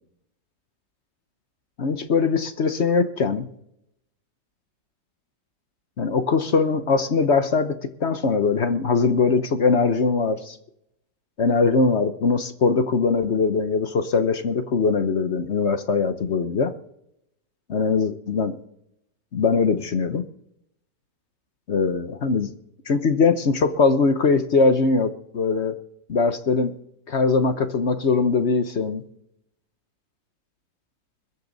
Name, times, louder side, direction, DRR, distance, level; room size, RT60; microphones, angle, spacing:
voice 1, 1.8-3.5 6.0-10.6 11.4-16.7 17.7-18.6 19.3-20.2 21.7-22.5 22.9-25.8 26.1-26.7 27.1-29.0, left 4 dB, 45° left, 10 dB, 1.0 m, -21 dB
21.5 x 14.0 x 4.0 m, 0.76 s
omnidirectional pair, 1.9 m